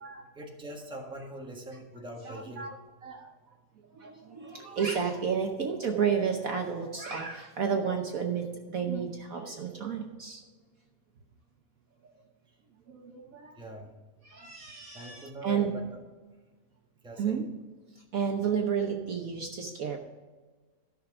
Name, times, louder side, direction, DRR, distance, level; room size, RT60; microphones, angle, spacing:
voice 1, 0.3-2.8 13.6-13.9 14.9-15.9 17.0-17.4, right 1 dB, 5° right, 0 dB, 1.3 m, -42 dB
voice 2, 2.2-2.7 3.0-3.3 3.9-10.4 12.9-13.6 14.2-15.7 17.2-17.4 18.1-20.0, right 6 dB, 55° right, 2 dB, 1.2 m, -31 dB
13.0 x 6.4 x 4.9 m, 1.4 s
omnidirectional pair, 1.9 m